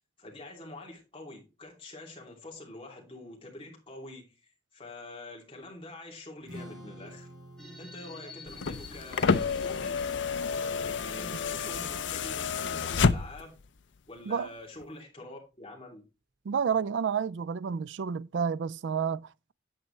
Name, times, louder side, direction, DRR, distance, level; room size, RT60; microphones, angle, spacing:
voice 1, 0.2-4.3 4.7-7.3 7.8-10.0 10.5-13.6 14.1-16.0, left 2 dB, 30° left, 2.8 m, -46 dB
Strum, 6.4-12.7, equal, 50° right, 4.5 m, -51 dB
sound 1, 7.6-12.5, left 3 dB, 5° left, 2.6 m, -51 dB
sound 2, 8.5-13.6 14.8-14.9, left 5 dB, 85° left, 0.6 m, -29 dB
voice 2, 16.5-19.5, right 6 dB, 85° right, 0.4 m, -30 dB
8.9 x 8.0 x 3.2 m
head